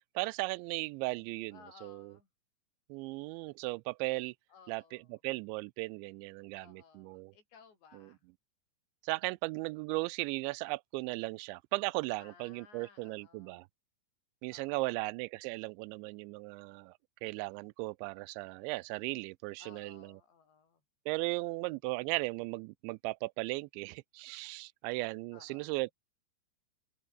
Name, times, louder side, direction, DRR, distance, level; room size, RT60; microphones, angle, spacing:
voice 1, 0.2-2.1 2.9-4.3 4.7-7.3 7.9-8.1 9.0-13.7 14.4-16.9 17.2-20.2 21.1-25.9, right 24 dB, 85° right, 2.8 m, -37 dB
voice 2, 1.5-2.3 4.5-5.2 6.6-8.2 12.2-13.6 14.5-15.1 19.6-20.8 25.3-25.8, left 6 dB, 70° left, 6.9 m, -59 dB
open air
omnidirectional pair, 5.4 m